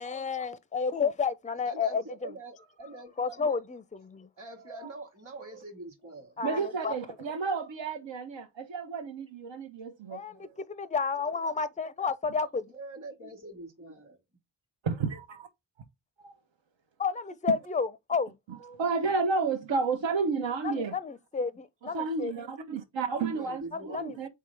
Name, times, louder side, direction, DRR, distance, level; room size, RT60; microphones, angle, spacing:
voice 1, 0.0-2.3 3.2-4.3 6.4-6.9 10.1-10.4 10.7-12.7 17.0-18.4 20.6-22.3 23.7-24.3, left 5 dB, 15° left, 0.4 m, -31 dB
voice 2, 1.6-3.6 4.4-6.4 12.7-14.2 23.3-24.3, right 2 dB, 35° right, 1.3 m, -45 dB
voice 3, 6.4-10.6 14.8-15.5 16.2-16.3 18.5-21.0 21.9-24.3, right 4 dB, 80° right, 0.9 m, -32 dB
3.7 x 3.7 x 3.3 m
cardioid pair, 55°, 44 cm